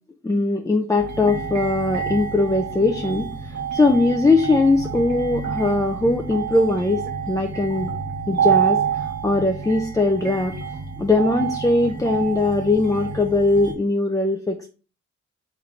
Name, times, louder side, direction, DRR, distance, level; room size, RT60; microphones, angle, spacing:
voice 1, 0.2-7.9 8.3-10.6 11.0-14.7, left 2 dB, 10° left, 4 dB, 0.4 m, -20 dB
sound 1, 1.0-13.7, right 7 dB, 70° right, 1.1 m, -28 dB
3.2 x 3.1 x 3.8 m, 0.36 s
cardioid pair, 60°, 29 cm